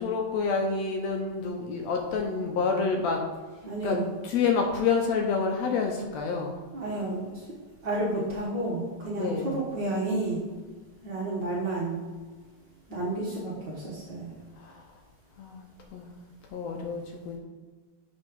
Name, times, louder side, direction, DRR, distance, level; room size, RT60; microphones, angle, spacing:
voice 1, 0.0-3.2 3.8-4.0 4.2-6.6 9.2-9.5 14.6-14.8 15.4-16.1 16.5-17.4, left 5 dB, 75° left, 2 dB, 1.8 m, -28 dB
voice 2, 3.6-4.1 6.7-7.4 7.8-10.4 11.0-12.0 12.9-14.3, right 2 dB, 50° right, -5 dB, 1.7 m, -31 dB
6.7 x 4.1 x 5.4 m, 1.4 s
omnidirectional pair, 3.3 m